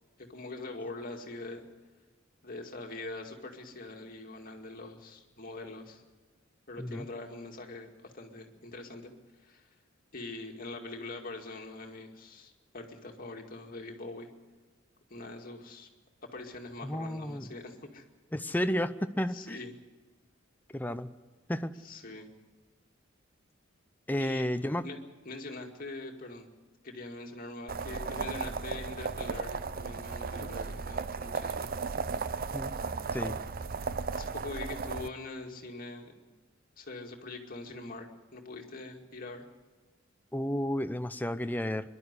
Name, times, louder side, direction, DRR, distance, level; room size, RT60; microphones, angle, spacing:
voice 1, 0.2-1.7 2.4-6.0 6.7-9.1 9.4-9.7 10.1-14.3 15.1-15.9 16.2-18.0 19.3-19.7 21.8-22.3 24.2-24.5 24.8-25.0 25.3-26.5 26.8-31.7 34.1-36.3 36.8-38.1 38.3-39.5, left 2 dB, 45° left, 2 dB, 2.3 m, -43 dB
voice 2, 16.8-17.5 18.3-19.6 20.7-21.1 21.5-21.7 24.1-24.8 32.5-32.7 33.1-33.4 40.3-41.9, equal, 10° left, 10 dB, 0.6 m, -32 dB
sound 1, 27.7-35.1, right 4 dB, 45° right, 0.5 m, -35 dB
24.5 x 11.5 x 9.8 m, 1.3 s
head